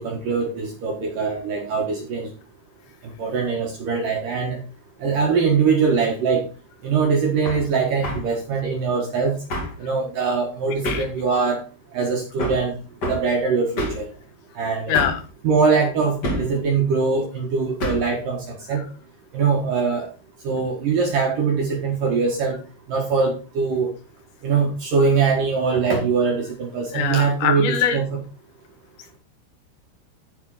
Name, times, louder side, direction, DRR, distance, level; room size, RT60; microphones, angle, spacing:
voice 1, 0.0-2.3 3.2-4.6 5.0-6.5 6.8-9.4 9.8-11.6 11.9-12.7 13.1-14.1 14.6-15.0 15.4-18.8 19.3-20.1 20.4-22.6 22.9-23.9 24.4-28.2, right 5 dB, 70° right, 1 dB, 2.1 m, -22 dB
Hammer, 7.4-7.6 8.0-8.3 9.5-9.8 10.8-11.2 12.4-12.7 13.0-13.3 13.8-14.1 14.9-15.3 16.2-16.6 17.8-18.1, equal, 50° left, 1.3 m, -27 dB
voice 2, 14.9-15.2 26.9-28.0, left 8 dB, 70° left, 7 dB, 3.3 m, -22 dB
14.5 x 5.3 x 3.8 m, 0.33 s
omnidirectional pair, 5.8 m